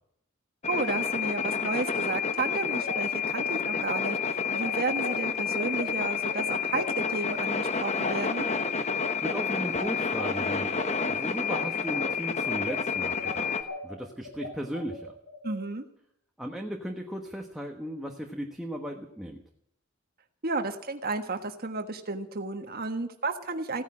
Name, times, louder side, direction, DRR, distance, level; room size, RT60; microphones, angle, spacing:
sound 1, 0.6-13.6, left 6 dB, 35° left, 1.1 m, -29 dB
voice 1, 0.7-8.5 15.4-15.8 20.4-23.8, right 3 dB, 50° right, 5 dB, 1.4 m, -32 dB
sound 2, 2.7-12.1 12.4-15.5, left 2 dB, 70° left, 4.4 m, -40 dB
voice 2, 9.2-10.7 11.1-13.6 13.8-15.1 16.4-19.4, equal, ahead, 1 dB, 1.3 m, -36 dB
16.5 x 10.0 x 8.8 m, 0.74 s
head